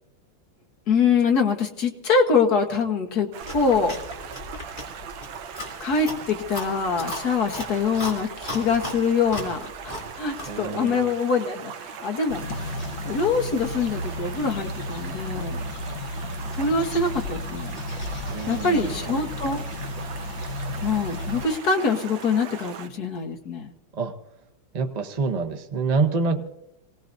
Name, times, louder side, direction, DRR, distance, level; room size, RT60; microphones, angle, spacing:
voice 1, 0.9-3.3 3.5-4.0 5.8-15.7 16.5-17.8 18.5-19.6 20.8-23.7, left 4 dB, 50° left, 3 dB, 1.7 m, -24 dB
Stream, 3.3-22.9, right 7 dB, 70° right, 1.5 m, -39 dB
Chewing mastication, 3.4-10.6, left 1 dB, 20° left, 3.4 m, -37 dB
voice 2, 10.5-11.1 18.3-19.1 24.0-24.1 24.7-26.4, right 4 dB, 40° right, 5 dB, 0.6 m, -26 dB
sound 1, 12.3-21.5, left 2 dB, 70° left, 1.8 m, -33 dB
26.0 x 18.0 x 2.7 m, 0.83 s
omnidirectional pair, 2.3 m